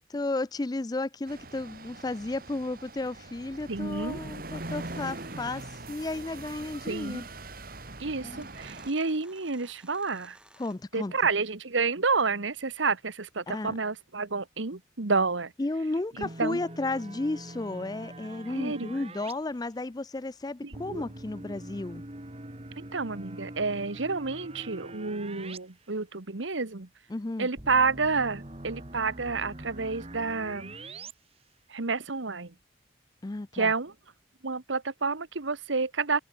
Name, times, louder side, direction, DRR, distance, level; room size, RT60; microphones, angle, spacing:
voice 1, 0.0-7.3 8.2-8.5 10.6-11.1 13.5-13.7 15.6-22.0 27.1-27.5 33.2-33.7, left 2 dB, 20° left, 0.4 m, -33 dB
sound 1, 1.3-8.9, right 2 dB, 50° right, 2.6 m, -42 dB
voice 2, 3.7-4.2 6.9-7.2 8.0-10.4 10.9-15.5 16.2-16.6 18.5-18.9 20.6-21.0 22.8-26.9 27.4-30.7 31.7-32.5 33.5-33.9 34.4-36.2, right 4 dB, 85° right, 1.4 m, -29 dB
sound 2, 4.5-6.1 7.4-7.5 8.2-11.0, right 1 dB, 5° right, 7.9 m, -58 dB
sound 3, 16.2-19.3 20.7-25.6 25.9-26.0 27.6-31.1, right 1 dB, 30° right, 1.9 m, -43 dB
open air
head